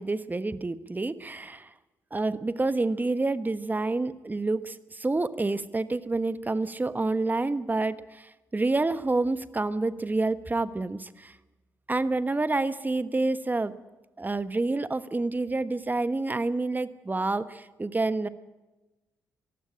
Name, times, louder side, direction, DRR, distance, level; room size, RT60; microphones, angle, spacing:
voice 1, 0.0-1.7 2.1-11.3 11.9-13.8 14.2-18.3, right 2 dB, 20° right, 13 dB, 1.2 m, -28 dB
22.5 x 16.0 x 8.8 m, 1.1 s
figure-of-eight pair, 40°, 8 cm